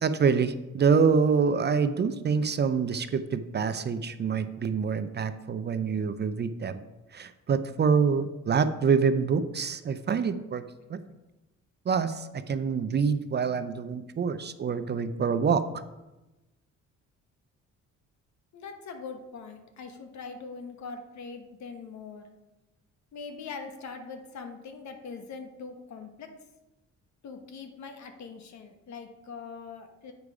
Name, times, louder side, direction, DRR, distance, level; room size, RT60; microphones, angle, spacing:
voice 1, 0.0-6.8 7.1-10.6 10.9-11.0 11.9-15.6, right 5 dB, 35° right, 11 dB, 0.5 m, -26 dB
voice 2, 18.5-22.3 23.1-26.3 27.2-30.1, left 5 dB, 65° left, 6 dB, 1.2 m, -42 dB
8.1 x 4.8 x 4.9 m, 1.0 s
cardioid pair, 90°, 30 cm